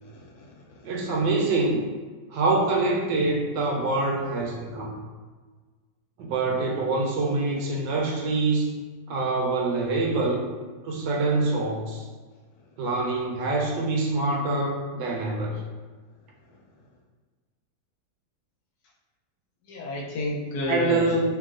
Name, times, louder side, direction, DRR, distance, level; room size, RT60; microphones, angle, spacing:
voice 1, 0.0-1.0 19.6-21.0, left 2 dB, 75° left, -2 dB, 1.2 m, -31 dB
voice 2, 0.8-1.9 2.3-5.0 6.2-8.7 9.1-10.4 10.8-12.0 12.8-15.6 20.7-21.2, right 3 dB, 80° right, -1 dB, 1.3 m, -25 dB
3.0 x 2.9 x 2.4 m, 1.4 s
omnidirectional pair, 1.9 m